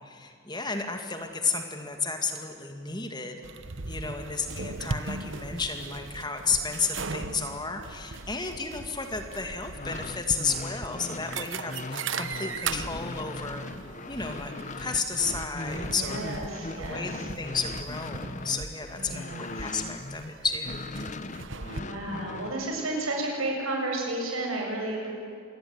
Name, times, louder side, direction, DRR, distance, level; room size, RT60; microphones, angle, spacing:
voice 1, 0.0-3.4 3.8-13.6 14.1-16.3 16.8-17.1 17.4-20.9, left 4 dB, 20° left, 6 dB, 2.0 m, -32 dB
sound 1, 3.4-21.8, right 4 dB, 60° right, 1.1 m, -39 dB
sound 2, 9.6-20.3 20.6-22.6, left 2 dB, 35° left, 1.0 m, -39 dB
voice 2, 15.8-17.3 18.9-19.7 21.7-25.1, right 2 dB, 80° right, 0 dB, 7.8 m, -32 dB
26.5 x 21.0 x 9.6 m, 2.4 s
head